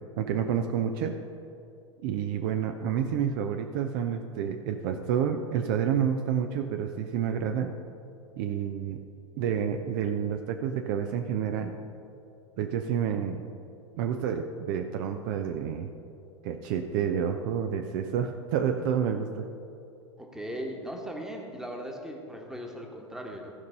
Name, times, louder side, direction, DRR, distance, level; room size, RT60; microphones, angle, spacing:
voice 1, 0.2-1.2 2.0-7.7 8.4-9.0 9.4-11.7 12.6-13.4 14.0-15.9 16.4-19.5, right 8 dB, 45° right, 6 dB, 0.5 m, -29 dB
voice 2, 20.2-23.5, equal, 5° right, 1 dB, 1.2 m, -38 dB
15.0 x 5.3 x 5.4 m, 2.6 s
figure-of-eight pair, 90°, 16 cm